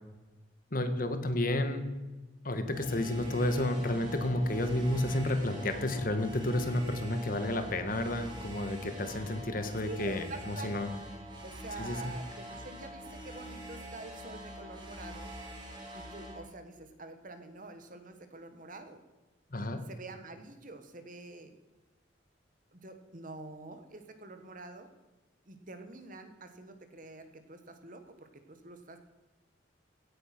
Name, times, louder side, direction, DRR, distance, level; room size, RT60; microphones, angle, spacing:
voice 1, 0.7-1.8 2.4-10.9 11.8-12.0 19.5-19.8, left 1 dB, 50° left, 9 dB, 1.5 m, -31 dB
sound 1, 2.7-16.4, equal, 25° right, 2.9 m, -45 dB
voice 2, 9.8-11.1 11.4-15.3 15.9-19.0 19.9-21.5 22.7-24.9 25.5-29.0, right 2 dB, 45° right, 8 dB, 1.5 m, -47 dB
16.5 x 8.7 x 6.0 m, 1.2 s
head